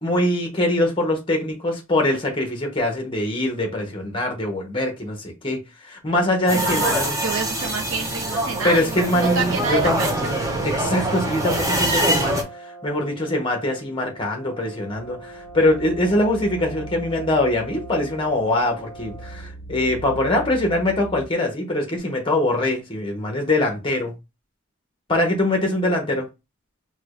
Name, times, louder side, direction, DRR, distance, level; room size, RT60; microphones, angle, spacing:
voice 1, 0.0-7.1 8.6-12.4 12.8-24.1 25.1-26.3, left 1 dB, 25° left, 0.8 m, -23 dB
sound 1, 6.5-12.4, right 1 dB, 15° right, 0.6 m, -24 dB
voice 2, 6.5-10.3, right 4 dB, 65° right, 0.5 m, -28 dB
Brass instrument, 11.7-19.5, right 2 dB, 5° left, 1.0 m, -42 dB
sound 2, 14.9-21.3, right 2 dB, 55° left, 0.5 m, -40 dB
4.6 x 2.2 x 2.4 m
head